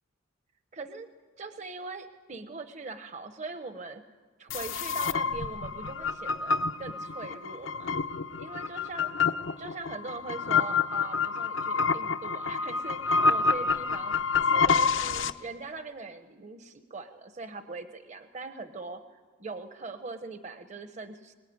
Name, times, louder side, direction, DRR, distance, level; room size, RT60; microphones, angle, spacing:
voice 1, 0.7-1.1 1.4-4.0 4.4-8.0 8.4-9.1 9.6-14.1 14.4-21.3, right 3 dB, 35° right, 8 dB, 0.9 m, -41 dB
sound 1, 4.5-15.3, left 5 dB, 70° left, 0.8 m, -28 dB
23.5 x 19.5 x 9.5 m, 1.4 s
head